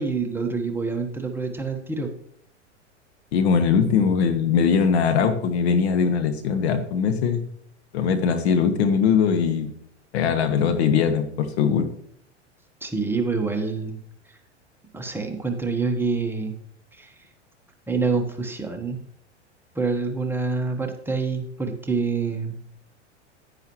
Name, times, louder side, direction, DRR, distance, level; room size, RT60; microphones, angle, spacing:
voice 1, 0.0-2.1 12.8-14.0 14.9-16.5 16.9-17.1 17.9-19.0 19.7-22.6, right 4 dB, 5° right, 2 dB, 1.4 m, -26 dB
voice 2, 3.3-7.4 7.9-9.7 10.1-11.9, left 6 dB, 60° left, 7 dB, 1.5 m, -21 dB
10.5 x 10.0 x 3.1 m, 0.66 s
hypercardioid pair, 95°, 36 cm